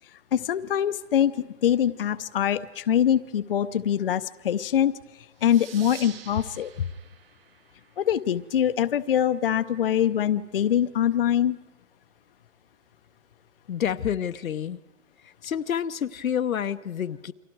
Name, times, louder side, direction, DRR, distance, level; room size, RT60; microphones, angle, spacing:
voice 1, 0.3-4.9 5.4-6.7 8.0-11.6, left 10 dB, 45° left, 11 dB, 0.7 m, -24 dB
sound 1, 5.4-8.6, right 8 dB, 45° right, 1.3 m, -47 dB
voice 2, 13.7-14.8 15.2-17.3, left 9 dB, 85° left, 10 dB, 1.0 m, -28 dB
30.0 x 24.5 x 4.7 m, 1.2 s
hypercardioid pair, 165°, 40 cm